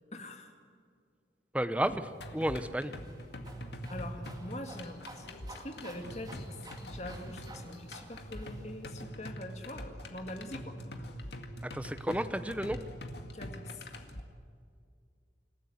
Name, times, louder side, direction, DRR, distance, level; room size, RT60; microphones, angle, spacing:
voice 1, 0.1-0.6 3.9-6.5 6.8-10.8 11.2-11.3 13.3-13.9, left 1 dB, 40° left, 5 dB, 2.2 m, -44 dB
voice 2, 1.5-2.9 11.7-12.8, right 1 dB, 5° right, 11 dB, 0.8 m, -32 dB
sound 1, 1.8-9.0, right 1 dB, 20° right, 2.8 m, -51 dB
sound 2, 2.2-14.2, equal, 70° left, 2.0 m, -44 dB
27.0 x 15.0 x 9.5 m, 2.2 s
head